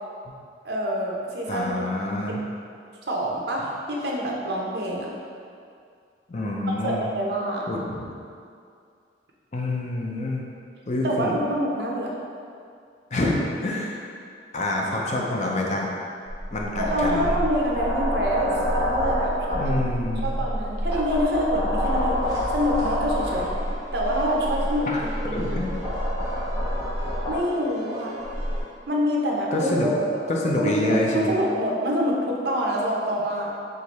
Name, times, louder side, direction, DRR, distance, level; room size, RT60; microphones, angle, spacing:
voice 1, 0.6-1.9 3.1-5.1 6.7-7.7 11.0-12.2 16.8-19.9 20.2-22.2 22.5-23.5 23.9-25.6 27.3-28.2 28.9-30.2 30.6-33.5, equal, 60° right, -2 dB, 0.7 m, -26 dB
voice 2, 1.5-2.4 6.3-7.1 7.7-8.1 9.5-10.4 10.9-11.4 13.1-14.0 14.5-15.9 16.5-17.4 19.5-20.4 24.9-25.0 25.3-25.7 29.5-29.9 30.3-31.3, left 1 dB, 40° left, -2 dB, 0.5 m, -27 dB
sound 1, 16.3-27.4 28.2-28.6, equal, 20° left, 1.0 m, -27 dB
sound 2, 21.3-28.7, left 1 dB, 20° right, 0.7 m, -41 dB
4.7 x 2.6 x 4.0 m, 2.4 s
head